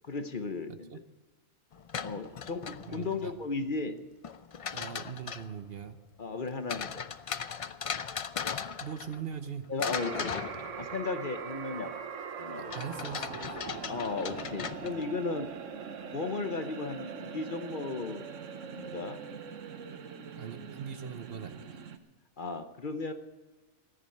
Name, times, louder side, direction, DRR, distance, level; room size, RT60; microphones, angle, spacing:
voice 1, 0.0-0.9 2.0-4.0 6.2-7.1 9.7-11.9 12.4-12.7 13.9-15.5 16.1-18.3 18.8-19.2 22.4-23.1, left 4 dB, 45° left, 8 dB, 0.9 m, -35 dB
voice 2, 0.7-1.0 2.8-3.3 4.7-6.0 8.8-9.7 12.6-13.4 20.4-21.7, right 7 dB, 55° right, 10 dB, 1.0 m, -41 dB
sound 1, 1.7-3.2 4.2-5.6 6.7-9.5 9.8-11.2 12.7-15.2, left 7 dB, 65° left, 0.3 m, -38 dB
sound 2, 9.9-22.0, right 6 dB, 80° right, 1.3 m, -42 dB
14.5 x 10.5 x 7.7 m, 1.3 s
omnidirectional pair, 1.3 m